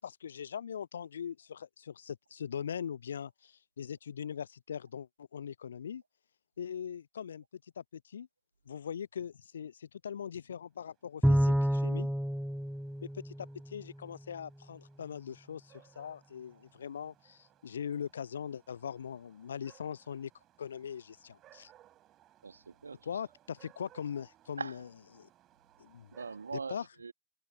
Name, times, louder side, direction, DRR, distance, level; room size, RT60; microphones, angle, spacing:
voice 1, 0.0-6.0 6.6-7.4 7.8-8.3 8.7-12.1 13.0-20.3 20.6-21.7 23.1-24.8 25.1-25.3 25.8-26.2 26.5-26.8, left 8 dB, 65° left, 0.9 m, -41 dB
Bowed string instrument, 11.2-13.9, equal, ahead, 0.7 m, -29 dB
sound 1, 11.4-26.5, right 13 dB, 30° right, 7.9 m, -65 dB
voice 2, 22.4-23.1 24.6-24.8 26.1-27.1, right 5 dB, 75° right, 2.7 m, -42 dB
figure-of-eight pair, 90°, 0 cm